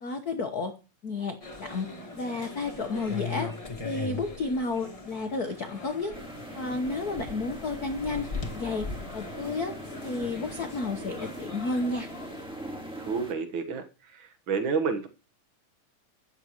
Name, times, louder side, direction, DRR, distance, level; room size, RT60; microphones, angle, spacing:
voice 1, 0.0-0.7 1.0-1.9 2.2-3.5 3.8-6.1 6.5-8.3 8.5-8.9 9.1-9.7 10.0-12.1, left 3 dB, 70° left, 0.9 m, -31 dB
sound 1, 1.4-12.5, left 3 dB, 15° left, 1.2 m, -40 dB
sound 2, 6.1-13.3, equal, ahead, 1.4 m, -42 dB
voice 2, 13.0-13.8 14.1-15.1, right 5 dB, 50° right, 1.7 m, -29 dB
13.5 x 9.1 x 3.0 m
omnidirectional pair, 3.4 m